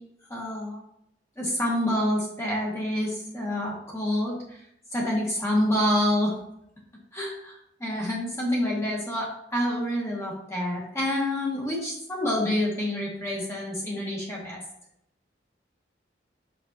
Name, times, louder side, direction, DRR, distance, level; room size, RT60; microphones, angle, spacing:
voice 1, 0.3-0.8 1.4-4.4 4.9-6.3 7.1-7.5 7.8-14.6, left 1 dB, 15° left, -4 dB, 1.6 m, -27 dB
6.2 x 6.1 x 2.8 m, 0.76 s
head